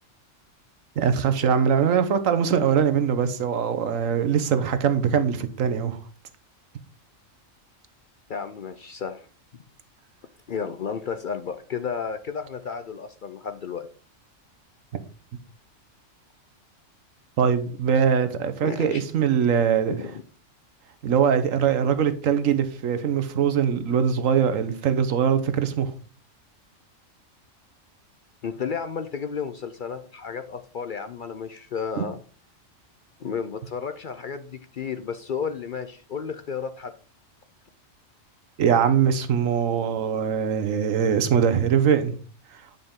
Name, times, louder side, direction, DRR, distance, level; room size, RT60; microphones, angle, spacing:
voice 1, 1.0-6.0 17.4-20.0 21.0-25.9 32.0-32.1 38.6-42.2, right 7 dB, 85° right, 1.3 m, -22 dB
voice 2, 8.3-9.3 10.5-13.9 18.6-19.0 19.9-20.2 28.4-32.2 33.2-36.9, left 6 dB, 55° left, 0.6 m, -32 dB
9.3 x 5.2 x 3.7 m
omnidirectional pair, 1.3 m